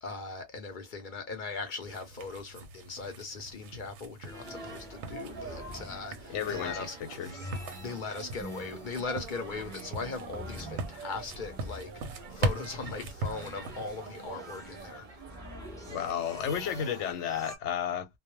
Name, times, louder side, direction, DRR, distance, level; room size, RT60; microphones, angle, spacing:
voice 1, 0.0-6.9 7.8-15.1, left 4 dB, 55° left, 0.7 m, -39 dB
sound 1, 1.8-14.3, right 2 dB, 85° right, 0.9 m, -40 dB
sound 2, 4.2-17.6, left 1 dB, 5° left, 0.3 m, -47 dB
sound 3, 4.4-17.1, right 5 dB, 50° right, 0.7 m, -47 dB
voice 2, 6.3-6.9 7.2-7.5 15.9-18.1, left 9 dB, 90° left, 0.9 m, -32 dB
2.2 x 2.0 x 2.9 m
omnidirectional pair, 1.2 m